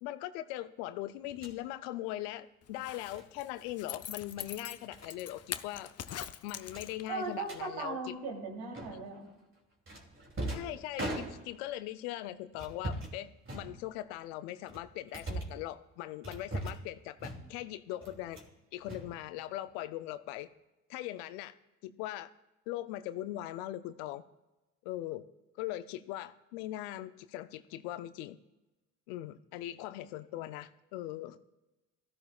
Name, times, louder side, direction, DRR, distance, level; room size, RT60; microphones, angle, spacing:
voice 1, 0.0-5.9 6.4-8.0 10.5-18.4 18.7-20.5 20.9-21.5 21.8-22.3 22.7-24.2 24.8-25.2 25.6-28.4 29.1-31.4, left 14 dB, 85° left, 13 dB, 0.6 m, -40 dB
sound 1, 1.3-1.6 3.1-3.3 4.1-4.5 4.9-5.1 5.4-5.6 5.9-6.0 6.7-7.6 8.7-9.2 9.9-11.7 12.5-13.2 13.4-14.2 14.7-15.6 16.2-16.9 17.2-17.7 18.0-18.5 18.8-19.7, right 1 dB, 30° right, 2.7 m, -41 dB
Zipper (clothing), 2.7-7.3 7.6-7.7, left 10 dB, 35° left, 0.6 m, -43 dB
voice 2, 7.1-9.3, right 4 dB, 75° right, 0 dB, 3.0 m, -38 dB
16.5 x 14.0 x 2.4 m, 1.0 s
hypercardioid pair, 60°, 43 cm